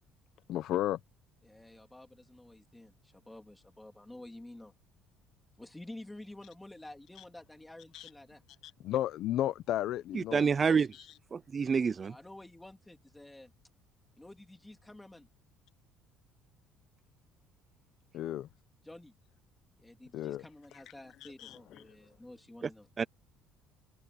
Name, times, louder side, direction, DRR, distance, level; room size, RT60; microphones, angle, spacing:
voice 1, 0.5-1.0 7.9-8.1 8.8-10.5 10.9-11.1 18.1-18.5 20.1-20.5 20.7-20.8 21.2-21.8, left 13 dB, 50° left, 0.6 m, -33 dB
voice 2, 1.4-4.7 5.6-8.4 12.0-13.5 14.2-15.3 18.8-19.1 19.8-22.9, left 1 dB, 5° left, 2.7 m, -50 dB
voice 3, 10.1-10.9 11.3-12.1 23.0-23.1, right 6 dB, 20° right, 0.3 m, -28 dB
open air
cardioid pair, 175°, 0 cm